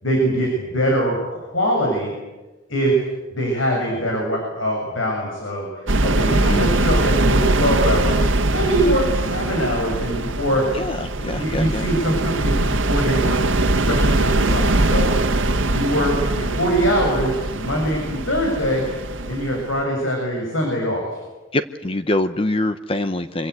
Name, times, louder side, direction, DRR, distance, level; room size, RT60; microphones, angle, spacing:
voice 1, 0.0-2.1 2.7-3.0 3.3-8.2 8.5-10.6 11.4-15.1 15.6-18.8 19.3-21.1, equal, 85° left, 0 dB, 7.4 m, -23 dB
sound 1, 5.9-19.8, right 2 dB, 80° right, 1.5 m, -21 dB
voice 2, 6.3-6.6 10.7-11.9 14.5-14.6 21.5-23.5, left 1 dB, 30° left, 10 dB, 0.8 m, -24 dB
26.5 x 24.5 x 8.3 m, 1.1 s
head